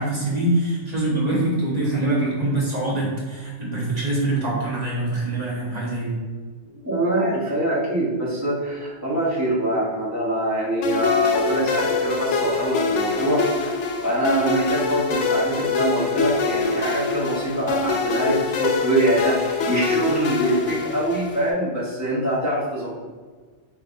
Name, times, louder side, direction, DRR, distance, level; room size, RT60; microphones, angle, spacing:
voice 1, 0.0-6.2, right 2 dB, 35° right, -6 dB, 1.2 m, -24 dB
voice 2, 6.8-22.9, right 1 dB, 15° right, -7 dB, 1.2 m, -24 dB
sound 1, 10.8-21.5, left 4 dB, 80° left, 0.9 m, -24 dB
4.9 x 3.2 x 2.7 m, 1.5 s
omnidirectional pair, 1.2 m